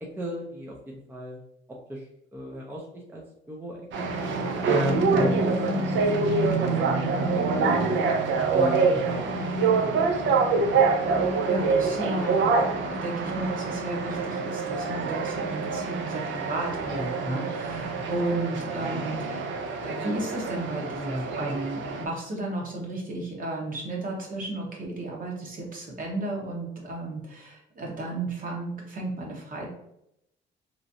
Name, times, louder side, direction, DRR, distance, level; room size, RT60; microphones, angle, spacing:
voice 1, 0.0-1.4 1.9-4.1 4.6-7.8 8.5-9.4 17.7-18.0, equal, 10° right, -2 dB, 0.5 m, -35 dB
sound 1, 3.9-22.0, right 4 dB, 70° right, 0.5 m, -26 dB
voice 2, 11.2-19.5 19.8-29.7, right 2 dB, 45° right, -2 dB, 1.1 m, -33 dB
3.0 x 2.5 x 2.6 m, 0.78 s
cardioid pair, 90°, 20 cm